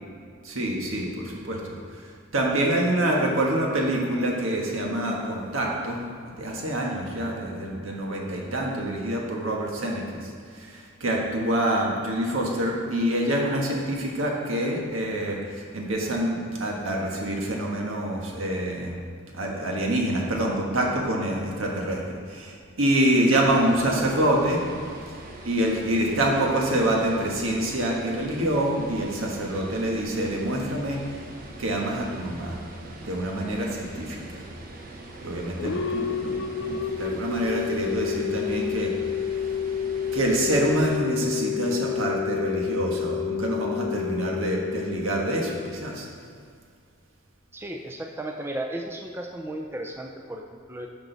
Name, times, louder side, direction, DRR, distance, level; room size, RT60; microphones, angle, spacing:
voice 1, 0.4-19.0 19.3-24.6 25.4-31.2 31.6-32.6 32.9-34.4 35.2-38.9 40.1-46.1, right 1 dB, 85° right, -1 dB, 1.5 m, -26 dB
sound 1, 23.5-41.0, right 2 dB, 45° right, 0.9 m, -43 dB
sound 2, 35.6-46.3, left 8 dB, 65° left, 0.3 m, -30 dB
voice 2, 47.5-50.9, right 1 dB, 10° right, 2 dB, 0.4 m, -35 dB
10.5 x 6.1 x 4.0 m, 2.3 s
head